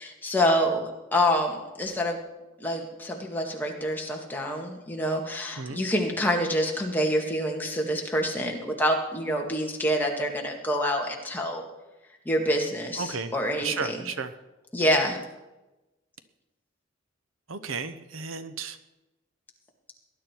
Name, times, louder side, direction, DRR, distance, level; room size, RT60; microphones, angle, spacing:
voice 1, 0.0-2.2 2.6-11.6 12.3-14.0 14.7-15.2, equal, 10° left, 0 dB, 2.0 m, -27 dB
voice 2, 13.0-13.3 13.6-14.3 17.5-18.8, right 5 dB, 75° right, 11 dB, 0.9 m, -33 dB
19.0 x 11.0 x 4.6 m, 1.0 s
head